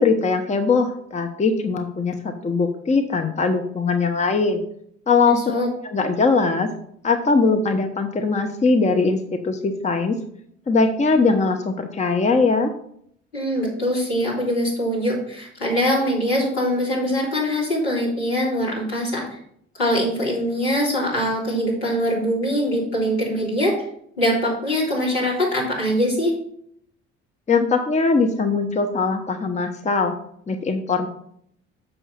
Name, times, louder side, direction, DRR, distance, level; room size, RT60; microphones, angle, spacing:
voice 1, 0.0-4.6 5.1-5.4 5.8-6.7 7.0-9.2 9.4-10.2 10.7-12.7 27.5-30.1 30.5-31.1, left 4 dB, 20° left, 6 dB, 0.9 m, -20 dB
voice 2, 5.3-5.7 13.3-19.4 19.8-23.7 24.2-26.3, equal, 75° left, -6 dB, 3.4 m, -23 dB
7.1 x 5.5 x 5.4 m, 0.68 s
figure-of-eight pair, 50°, 33 cm